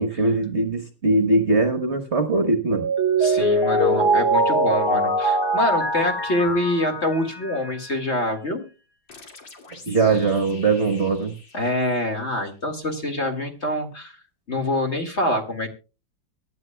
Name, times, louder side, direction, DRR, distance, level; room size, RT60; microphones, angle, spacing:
voice 1, 0.0-2.9 9.9-11.3, right 3 dB, 40° right, 7 dB, 1.3 m, -21 dB
Mallet percussion, 2.7-7.7, right 1 dB, 20° left, 0.7 m, -22 dB
voice 2, 3.2-8.6 11.5-14.2 14.5-15.7, left 1 dB, 35° left, 4 dB, 2.2 m, -25 dB
sound 1, 9.1-12.6, left 3 dB, 90° left, 3.1 m, -46 dB
24.0 x 10.0 x 2.2 m, 0.32 s
omnidirectional pair, 2.0 m